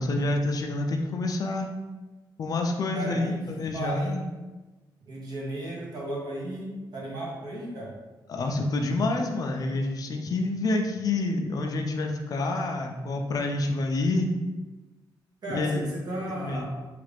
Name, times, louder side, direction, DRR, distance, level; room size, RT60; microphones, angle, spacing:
voice 1, 0.0-1.7 2.4-4.2 8.3-14.3 15.5-15.9 16.4-16.7, left 2 dB, 50° left, 3 dB, 0.3 m, -28 dB
voice 2, 2.9-3.4 3.7-4.2 5.1-8.0 15.4-16.7, right 1 dB, 55° right, -4 dB, 0.9 m, -35 dB
3.1 x 2.4 x 3.3 m, 1.2 s
wide cardioid pair, 155°, 8 cm